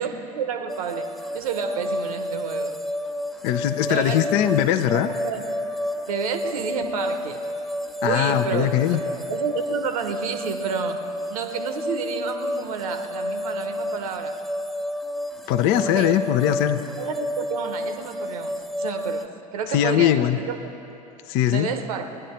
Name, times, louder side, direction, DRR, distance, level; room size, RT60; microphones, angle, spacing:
voice 1, 0.0-2.8 3.9-4.5 4.9-5.4 6.1-7.4 8.0-14.4 15.8-16.2 17.0-20.6 21.5-22.2, right 6 dB, 75° right, 8 dB, 0.9 m, -30 dB
sound 1, 0.7-19.3, left 1 dB, ahead, 0.5 m, -30 dB
voice 2, 3.4-5.1 8.0-9.0 15.5-16.8 19.7-20.4 21.3-21.7, left 11 dB, 55° left, 10 dB, 0.6 m, -21 dB
17.5 x 11.0 x 4.3 m, 2.9 s
hypercardioid pair, 75°, 19 cm